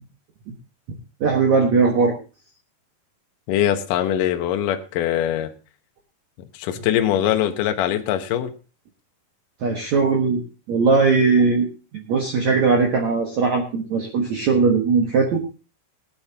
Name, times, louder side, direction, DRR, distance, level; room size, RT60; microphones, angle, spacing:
voice 1, 1.2-2.1 9.6-10.4 10.7-11.7 12.1-15.4, right 4 dB, 60° right, 1 dB, 2.1 m, -19 dB
voice 2, 3.5-5.5 6.5-8.5, left 11 dB, 70° left, 6 dB, 2.1 m, -22 dB
21.0 x 9.9 x 2.9 m, 0.33 s
omnidirectional pair, 5.0 m